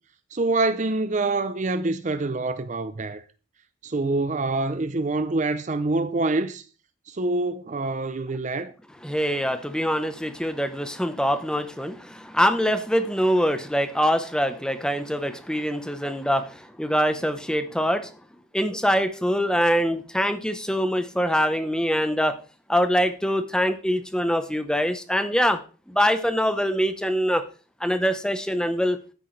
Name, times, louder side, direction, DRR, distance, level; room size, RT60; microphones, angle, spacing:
voice 1, 0.3-3.2 3.8-6.7 7.1-8.7, right 2 dB, 35° right, 0.6 m, -26 dB
voice 2, 9.0-18.1 18.5-22.4 22.7-25.6 25.9-27.4 27.8-29.0, equal, 5° left, 0.9 m, -24 dB
12.0 x 9.8 x 3.3 m
head